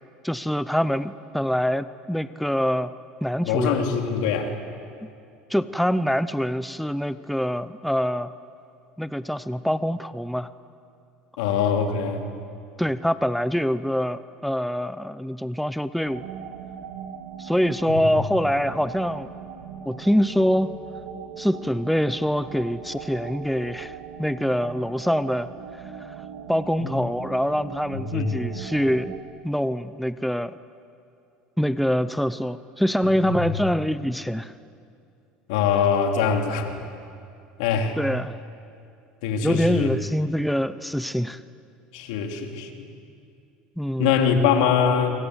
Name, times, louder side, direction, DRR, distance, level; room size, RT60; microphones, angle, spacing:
voice 1, 0.2-2.9 3.2-3.8 5.5-8.3 9.0-10.5 12.8-16.3 17.4-19.3 19.9-20.7 21.4-26.1 26.5-29.2 29.4-30.5 31.6-34.5 38.0-38.4 39.4-41.4 43.8-44.1, equal, ahead, 14 dB, 0.8 m, -25 dB
voice 2, 3.4-4.5 11.4-12.2 17.9-18.0 26.8-26.9 28.1-28.4 35.5-36.8 37.6-38.0 39.2-39.9 41.9-42.8 44.0-45.3, left 7 dB, 80° left, 4 dB, 3.1 m, -23 dB
sound 1, 16.0-29.2, right 7 dB, 85° right, 2.3 m, -39 dB
26.5 x 25.5 x 8.2 m, 2.5 s
supercardioid pair, 95°, 4 cm